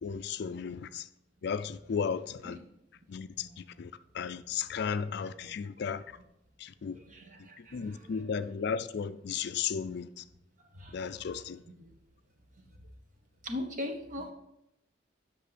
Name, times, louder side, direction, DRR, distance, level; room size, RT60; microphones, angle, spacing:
voice 1, 0.0-1.0 1.4-2.6 3.1-3.5 3.8-6.0 6.6-7.0 7.7-10.2 10.9-11.6, left 6 dB, 60° left, 0.4 m, -34 dB
voice 2, 6.9-8.2 10.8-11.2 11.8-11.9 13.4-14.3, left 1 dB, 45° right, 1.2 m, -41 dB
8.4 x 6.3 x 4.1 m
head